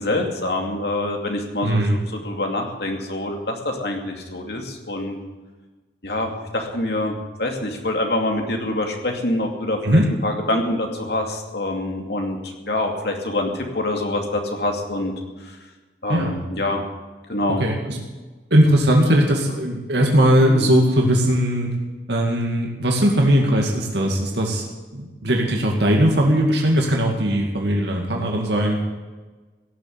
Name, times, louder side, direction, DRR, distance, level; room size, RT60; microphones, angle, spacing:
voice 1, 0.0-5.2 6.0-15.1 15.4-15.6 16.0-16.8 17.3-17.6, left 1 dB, 65° left, 2 dB, 2.6 m, -25 dB
voice 2, 1.6-2.0 9.8-10.1 16.1-16.3 17.6-18.0 18.5-21.7 22.1-24.6 24.9-28.8, equal, 75° right, 0 dB, 2.2 m, -19 dB
16.5 x 7.4 x 9.7 m, 1.3 s
head